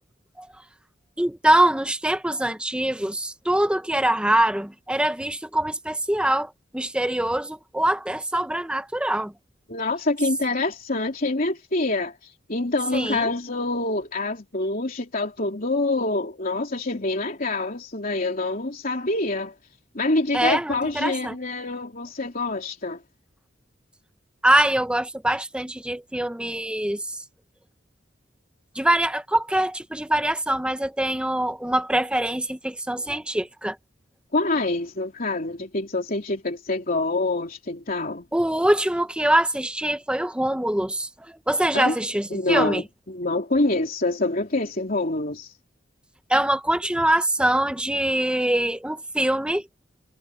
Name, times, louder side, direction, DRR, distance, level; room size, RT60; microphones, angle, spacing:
voice 1, 1.2-9.3 12.9-13.3 20.3-21.3 24.4-27.2 28.7-33.8 38.3-42.8 46.3-49.6, right 1 dB, 5° right, 0.7 m, -23 dB
voice 2, 9.7-19.5 19.9-23.0 34.3-38.3 41.7-42.0 42.3-45.6, left 2 dB, 50° left, 3.3 m, -26 dB
head